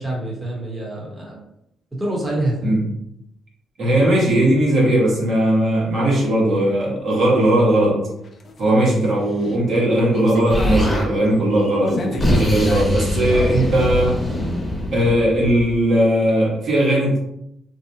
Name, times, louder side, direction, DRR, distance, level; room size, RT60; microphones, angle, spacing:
voice 1, 0.0-1.4 1.9-2.8, right 1 dB, 15° right, -4 dB, 1.0 m, -26 dB
voice 2, 3.8-8.0 8.6-14.2 14.9-17.2, right 1 dB, 60° right, -3 dB, 1.3 m, -18 dB
sound 1, 8.2-15.0, left 3 dB, 45° left, 0.5 m, -35 dB
Explosion, 10.5-11.1 11.9-15.7, left 1 dB, 10° left, 0.9 m, -22 dB
3.3 x 2.7 x 2.7 m, 0.80 s
cardioid pair, 90°, 0 cm